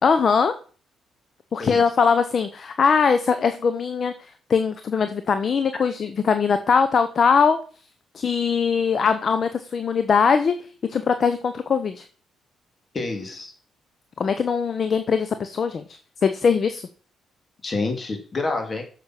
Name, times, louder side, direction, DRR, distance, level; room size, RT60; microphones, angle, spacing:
voice 1, 0.0-0.5 1.5-4.1 4.5-7.6 8.1-10.5 10.9-12.0 14.2-15.8 16.2-16.9, left 6 dB, 50° left, 10 dB, 0.9 m, -21 dB
voice 2, 12.9-13.5 17.6-18.8, left 3 dB, 35° left, 5 dB, 2.9 m, -28 dB
9.0 x 7.2 x 6.0 m, 0.40 s
cardioid pair, 90°, 0 cm